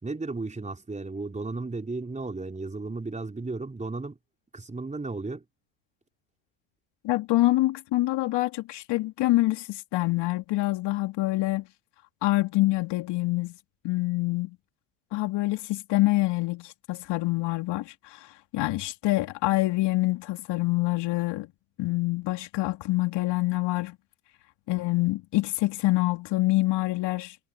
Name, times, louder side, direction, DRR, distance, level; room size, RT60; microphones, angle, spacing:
voice 1, 0.0-4.2 4.5-5.4, right 3 dB, 15° right, 4.4 m, -34 dB
voice 2, 7.0-11.7 12.2-13.6 13.8-14.6 15.1-21.5 21.8-24.0 24.7-27.4, left 19 dB, 55° left, 2.8 m, -26 dB
hypercardioid pair, 80°, 49 cm